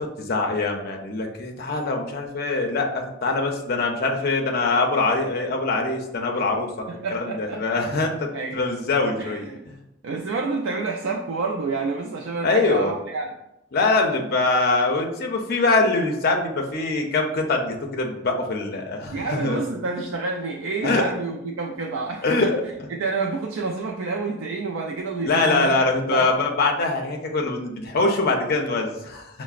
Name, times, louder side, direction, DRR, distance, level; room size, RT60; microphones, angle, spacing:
voice 1, 0.0-9.8 12.4-12.9 13.7-19.6 20.8-21.1 22.2-22.6 25.2-29.4, left 3 dB, 50° left, 2 dB, 0.5 m, -23 dB
voice 2, 6.9-7.8 8.3-8.6 9.2-9.6 10.0-13.3 19.1-22.5 22.9-25.8 26.1-26.3, right 3 dB, 80° right, 0 dB, 0.3 m, -29 dB
5.6 x 2.0 x 2.4 m, 0.86 s
head